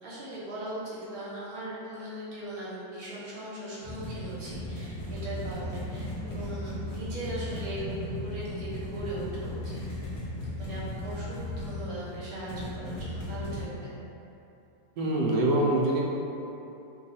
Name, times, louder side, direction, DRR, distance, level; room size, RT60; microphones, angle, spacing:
voice 1, 0.0-9.8 10.6-13.9, right 1 dB, 60° right, -8 dB, 1.3 m, -39 dB
sound 1, 3.8-13.6, left 1 dB, 60° left, 0.5 m, -36 dB
voice 2, 15.0-16.0, right 1 dB, 75° right, -3 dB, 1.2 m, -24 dB
3.0 x 2.3 x 4.1 m, 2.9 s
omnidirectional pair, 2.0 m